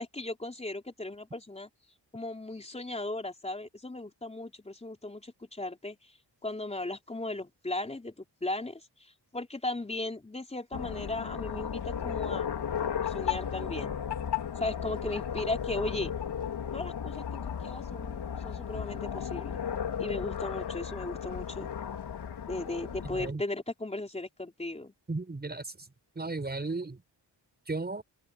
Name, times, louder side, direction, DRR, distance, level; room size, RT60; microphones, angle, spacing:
voice 1, 0.0-1.7 2.1-6.1 6.4-12.5 13.0-13.9 14.6-16.1 16.7-19.5 20.0-21.7 22.4-24.9, left 2 dB, 15° left, 3.9 m, -37 dB
sound 1, 10.7-23.3, left 8 dB, 70° left, 3.6 m, -35 dB
voice 2, 23.0-23.4 25.1-25.7 26.2-27.0 27.7-28.0, right 3 dB, 25° right, 7.0 m, -34 dB
open air
wide cardioid pair, 150°, 42 cm